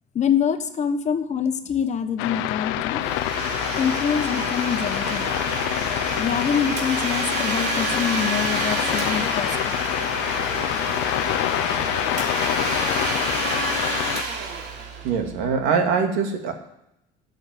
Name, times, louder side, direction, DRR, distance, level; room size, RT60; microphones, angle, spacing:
voice 1, 0.1-3.0 3.8-5.3 6.2-9.5 9.9-10.1, left 7 dB, 35° left, 9 dB, 1.2 m, -25 dB
sound 1, 2.2-14.2, left 15 dB, 80° left, 0.6 m, -26 dB
Domestic sounds home sounds, 2.9-15.5, right 4 dB, 60° right, 3.3 m, -29 dB
voice 2, 15.0-16.5, right 6 dB, 85° right, 4 dB, 2.4 m, -22 dB
12.5 x 6.7 x 9.4 m, 0.81 s
cardioid pair, 120°, 20 cm